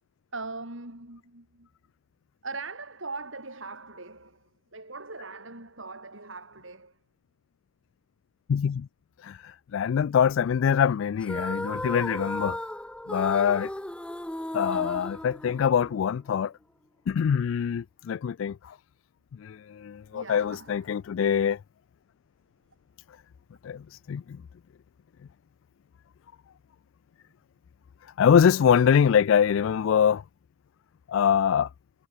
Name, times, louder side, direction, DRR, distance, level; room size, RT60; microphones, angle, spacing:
voice 1, 0.3-1.7 2.4-7.0 20.1-20.9, right 3 dB, 65° right, 6.1 m, -40 dB
voice 2, 8.5-8.9 9.2-12.6 13.1-13.7 14.5-16.5 17.1-18.8 19.4-21.6 23.6-24.4 28.2-30.2 31.1-31.7, left 7 dB, 70° left, 0.3 m, -24 dB
sound 1, 11.2-16.0, left 1 dB, 5° left, 0.5 m, -35 dB
head